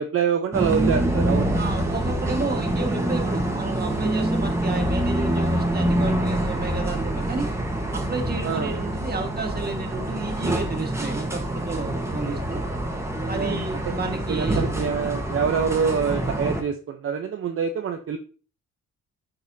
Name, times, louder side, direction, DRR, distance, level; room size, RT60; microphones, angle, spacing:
voice 1, 0.0-1.5 8.4-8.7 13.3-13.6 14.3-18.2, right 6 dB, 50° right, 4 dB, 0.8 m, -25 dB
sound 1, 0.5-16.6, right 1 dB, 10° right, 1.3 m, -26 dB
voice 2, 1.5-7.5 7.9-12.6 13.3-14.7, right 3 dB, 30° right, 4 dB, 1.6 m, -31 dB
10.5 x 4.1 x 2.7 m, 0.37 s
cardioid pair, 90°, 30 cm